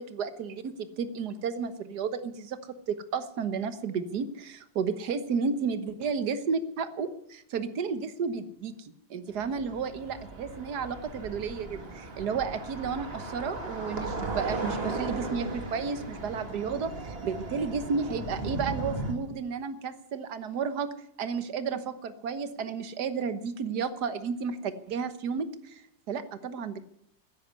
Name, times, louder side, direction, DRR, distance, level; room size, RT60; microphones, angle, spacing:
voice 1, 0.0-16.9 17.2-20.9 21.2-25.8 26.1-26.8, right 5 dB, 60° right, 11 dB, 1.6 m, -32 dB
sound 1, 9.3-19.1, right 2 dB, 30° right, 2.4 m, -36 dB
13.5 x 10.5 x 9.7 m, 0.76 s
omnidirectional pair, 2.0 m